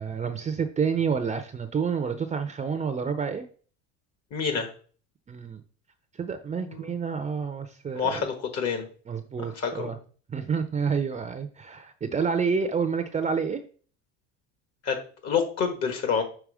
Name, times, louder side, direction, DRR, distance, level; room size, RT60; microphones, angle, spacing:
voice 1, 0.0-3.5 5.3-5.6 6.1-8.3 9.1-10.0 10.3-13.6, right 6 dB, 20° right, 8 dB, 0.6 m, -29 dB
voice 2, 4.3-4.7 6.6-7.0 7.9-8.9 9.5-9.9 14.8-15.0 15.2-16.2, left 6 dB, 50° left, 5 dB, 1.4 m, -27 dB
6.3 x 3.0 x 4.9 m, 0.41 s
supercardioid pair, 105°, 34 cm